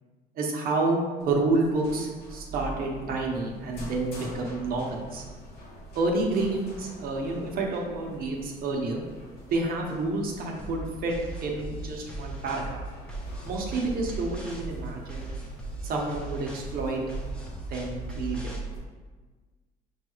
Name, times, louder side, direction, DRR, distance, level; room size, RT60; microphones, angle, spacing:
voice 1, 0.3-5.2 5.9-9.0 9.5-11.1 11.4-12.8 13.4-15.3 15.8-17.0 17.7-18.5, right 2 dB, 60° right, 0 dB, 0.7 m, -29 dB
sound 1, 1.2-18.8, right 1 dB, 75° left, 1.0 m, -43 dB
sound 2, 10.6-18.6, right 2 dB, 5° left, 0.6 m, -38 dB
5.4 x 2.3 x 3.0 m, 1.4 s
cardioid pair, 110°, 17 cm